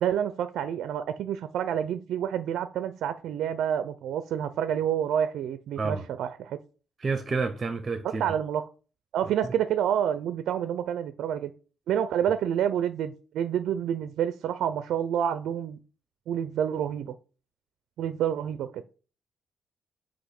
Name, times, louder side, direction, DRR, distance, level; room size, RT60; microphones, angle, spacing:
voice 1, 0.0-6.6 8.2-8.6 9.1-11.5 11.9-15.8 16.3-17.2 18.0-18.8, right 9 dB, 80° right, 0.4 m, -28 dB
voice 2, 7.0-8.2, right 4 dB, 35° right, 0.6 m, -29 dB
6.2 x 3.0 x 5.8 m
cardioid pair, 90°, 0 cm